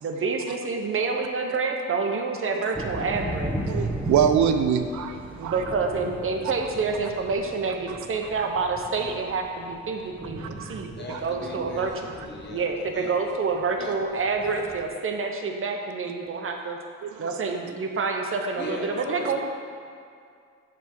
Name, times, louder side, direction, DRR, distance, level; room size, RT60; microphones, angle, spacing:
voice 1, 0.0-3.5 5.4-11.9 12.5-16.8 17.2-19.4, right 4 dB, 45° right, 3 dB, 0.8 m, -28 dB
sound 1, 2.7-14.9, right 1 dB, 5° right, 0.8 m, -36 dB
voice 2, 3.7-5.2 5.4-5.6 10.4-10.8 11.1-11.2 14.4-14.6 17.0-17.3, right 8 dB, 75° right, 8 dB, 0.5 m, -24 dB
voice 3, 10.9-12.7 12.9-13.1 13.8-14.0 18.5-19.4, left 3 dB, 35° left, 0 dB, 1.1 m, -38 dB
7.3 x 3.5 x 5.9 m, 2.3 s
cardioid pair, 85°, 29 cm